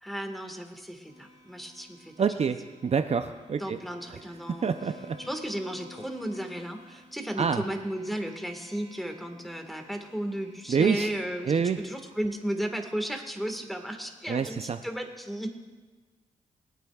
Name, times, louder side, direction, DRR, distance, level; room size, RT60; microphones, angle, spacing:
voice 1, 0.0-2.1 3.6-4.7 5.2-11.5 11.8-15.6, right 1 dB, ahead, 5 dB, 1.6 m, -34 dB
sound 1, 1.0-12.0, left 2 dB, 50° left, 4.0 m, -53 dB
voice 2, 2.2-2.6 2.8-3.8 4.1-4.2 4.6-5.2 7.4-7.6 10.7-11.1 11.4-11.8 14.3-14.8, right 6 dB, 50° right, 7 dB, 0.6 m, -26 dB
21.0 x 8.9 x 2.4 m, 1.3 s
cardioid pair, 55°, 14 cm